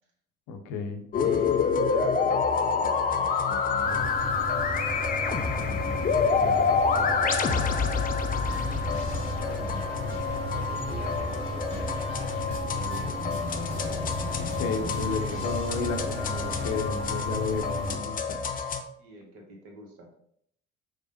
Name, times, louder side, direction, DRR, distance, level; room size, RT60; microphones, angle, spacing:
voice 1, 0.5-1.1 14.6-18.4, left 4 dB, 60° left, 6 dB, 0.6 m, -32 dB
sound 1, 1.1-18.8, left 5 dB, 25° left, 0.4 m, -28 dB
voice 2, 1.2-4.3 5.6-7.6 9.4-10.0 10.4-14.3 14.7-15.5 19.0-20.1, right 1 dB, 65° right, 1 dB, 1.0 m, -45 dB
sound 2, 3.8-18.0, right 2 dB, 15° right, 0.7 m, -36 dB
sound 3, 8.4-17.3, left 3 dB, 90° left, 1.0 m, -39 dB
4.9 x 2.0 x 2.7 m, 0.69 s
figure-of-eight pair, 50°, 39 cm